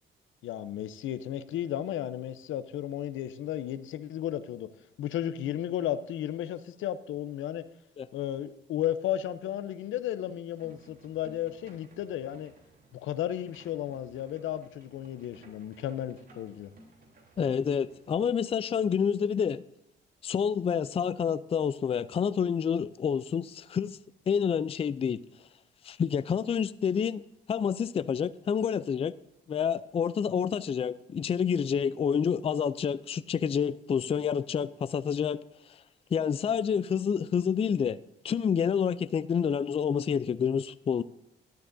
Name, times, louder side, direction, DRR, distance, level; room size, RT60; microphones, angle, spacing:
voice 1, 0.4-4.7 5.0-7.7 8.1-12.5 12.9-16.7, left 11 dB, 80° left, 0.7 m, -34 dB
sound 1, 10.6-18.2, right 2 dB, 50° right, 3.4 m, -58 dB
voice 2, 17.4-19.6 20.2-24.0 24.3-25.2 25.8-27.2 27.5-29.1 29.5-35.4 35.7-35.8 36.1-38.0 38.2-41.0, left 7 dB, 30° left, 0.4 m, -28 dB
13.0 x 12.0 x 2.6 m
cardioid pair, 90°, 20 cm